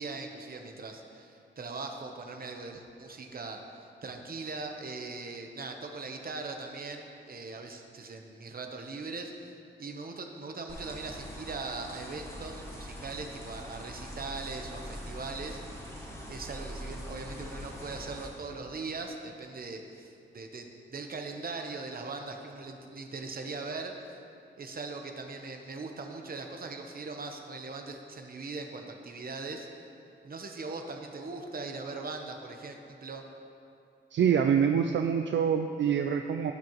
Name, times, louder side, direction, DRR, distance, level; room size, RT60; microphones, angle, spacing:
voice 1, 0.0-3.6 4.0-9.5 9.8-24.1 24.6-29.7 30.2-33.2, right 3 dB, 45° right, 4 dB, 1.0 m, -40 dB
sound 1, 10.7-18.3, equal, 15° left, 2.1 m, -43 dB
voice 2, 34.1-36.5, right 7 dB, 65° right, 6 dB, 0.4 m, -25 dB
17.5 x 7.6 x 3.1 m, 2.6 s
wide cardioid pair, 135°, 20 cm